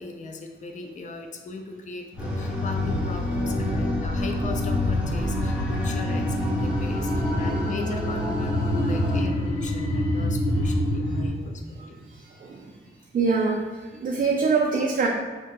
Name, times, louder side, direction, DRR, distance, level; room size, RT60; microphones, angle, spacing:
voice 1, 0.0-12.0, left 3 dB, 35° left, 3 dB, 0.4 m, -38 dB
sound 1, 2.1-11.3, equal, 85° left, 0.7 m, -27 dB
sound 2, 2.2-9.2, left 2 dB, 5° right, 0.6 m, -29 dB
voice 2, 11.8-12.7 13.1-15.1, right 4 dB, 45° right, -1 dB, 0.4 m, -25 dB
2.8 x 2.2 x 2.9 m, 1.4 s
cardioid pair, 60°, 21 cm